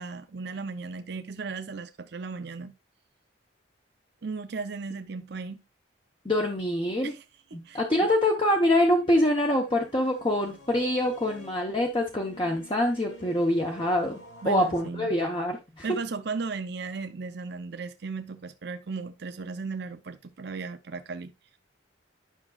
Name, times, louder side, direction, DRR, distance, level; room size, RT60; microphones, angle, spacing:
voice 1, 0.0-2.7 4.2-5.6 7.0-7.2 7.6-7.8 14.4-15.1 15.8-21.3, right 4 dB, 55° right, 0.5 m, -36 dB
voice 2, 6.2-7.1 7.5-16.0, left 1 dB, 25° left, 0.8 m, -25 dB
sound 1, 7.6-14.9, right 1 dB, 85° left, 3.0 m, -50 dB
10.0 x 5.9 x 2.3 m
head